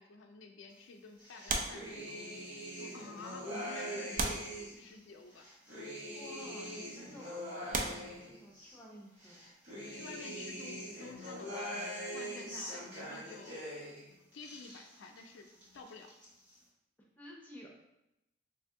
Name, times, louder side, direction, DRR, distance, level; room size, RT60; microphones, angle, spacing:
voice 1, 0.0-2.2 2.7-4.4 4.7-5.5 9.9-13.6 14.1-15.5 15.7-16.1, left 3 dB, 85° left, 4 dB, 0.4 m, -51 dB
sound 1, 1.2-4.8 5.3-8.7 9.2-14.0 14.3-15.2 15.5-16.3, equal, 75° right, 1.3 m, -43 dB
sound 2, 1.5-2.5 3.3-3.4 4.1-5.2 6.2-6.4 7.1-7.2 7.7-8.9 10.8-12.6 12.9-13.1, right 3 dB, 45° right, 0.4 m, -39 dB
voice 2, 6.1-9.4 17.2-17.7, equal, 10° left, -2 dB, 0.6 m, -52 dB
2.8 x 2.6 x 3.6 m, 0.88 s
head